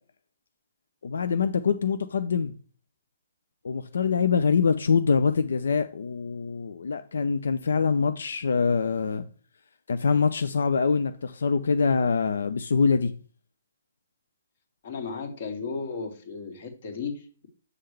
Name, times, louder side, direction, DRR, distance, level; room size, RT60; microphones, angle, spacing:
voice 1, 1.0-2.5 3.6-9.2 9.9-13.1, left 5 dB, 85° left, 0.5 m, -24 dB
voice 2, 14.8-17.5, left 5 dB, 45° left, 1.8 m, -35 dB
7.8 x 5.7 x 3.3 m
hypercardioid pair, 170°, 0 cm